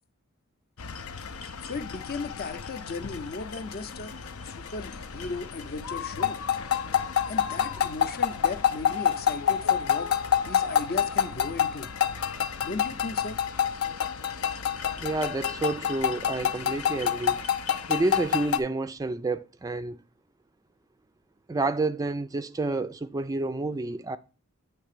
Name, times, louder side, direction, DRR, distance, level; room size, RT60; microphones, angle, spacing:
sound 1, 0.8-18.6, left 9 dB, 85° left, 0.7 m, -28 dB
voice 1, 1.4-4.1 4.4-6.4 7.3-10.1 10.4-11.9 12.6-13.4, left 4 dB, 45° left, 0.6 m, -36 dB
voice 2, 15.0-17.4 17.9-20.0 21.5-24.2, right 2 dB, 15° right, 0.3 m, -29 dB
9.0 x 3.3 x 6.6 m
head